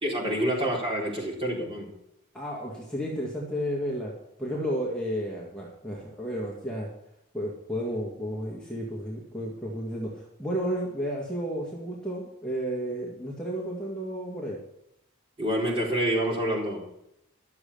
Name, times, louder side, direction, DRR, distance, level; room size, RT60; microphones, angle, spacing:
voice 1, 0.0-1.9 15.4-16.8, equal, 25° right, -4 dB, 3.9 m, -27 dB
voice 2, 2.3-4.1 4.4-6.9 7.3-14.6, equal, 5° left, -5 dB, 2.0 m, -32 dB
12.5 x 7.1 x 6.9 m, 0.81 s
head